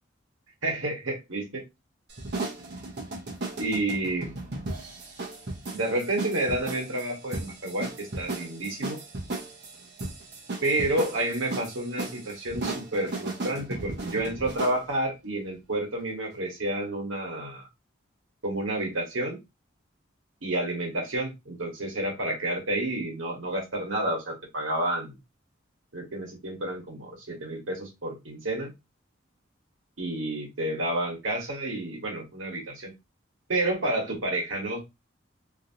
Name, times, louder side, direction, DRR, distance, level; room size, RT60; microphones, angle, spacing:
voice 1, 0.6-1.6 3.6-4.3 5.7-9.0 10.6-17.7 18.4-19.4 20.4-25.2 25.9-28.7 30.0-32.9 33.5-34.8, right 1 dB, 90° right, 0 dB, 1.3 m, -30 dB
sound 1, 2.1-14.8, right 2 dB, 55° right, 0.8 m, -36 dB
2.8 x 2.6 x 2.8 m, 0.22 s
head